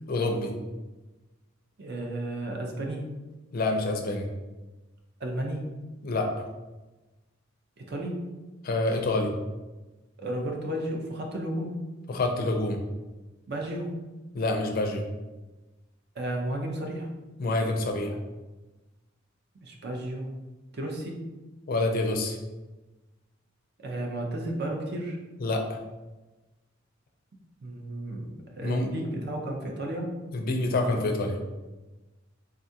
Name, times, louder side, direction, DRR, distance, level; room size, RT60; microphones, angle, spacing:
voice 1, 0.1-0.5 3.5-4.3 6.0-6.3 8.6-9.3 12.1-12.8 14.3-15.1 17.4-18.2 21.7-22.4 25.4-25.8 28.6-28.9 30.3-31.4, left 2 dB, 50° left, 4 dB, 0.4 m, -27 dB
voice 2, 1.8-3.1 5.2-5.7 7.8-8.3 10.2-11.9 13.5-14.0 16.2-17.1 19.6-20.3 20.7-21.2 23.8-25.2 27.6-30.2, right 1 dB, 55° right, 1 dB, 0.5 m, -33 dB
3.6 x 2.3 x 2.7 m, 1.1 s
head